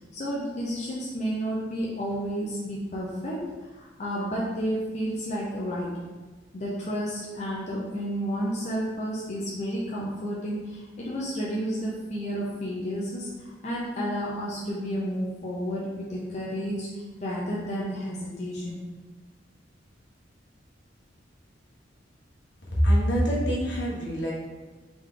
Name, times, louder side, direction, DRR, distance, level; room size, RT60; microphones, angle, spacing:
voice 1, 0.1-3.4 3.7-6.0 6.5-18.8, equal, 35° left, -6 dB, 0.6 m, -31 dB
voice 2, 22.7-24.3, equal, 70° left, -5 dB, 1.3 m, -24 dB
3.8 x 3.3 x 3.7 m, 1.3 s
head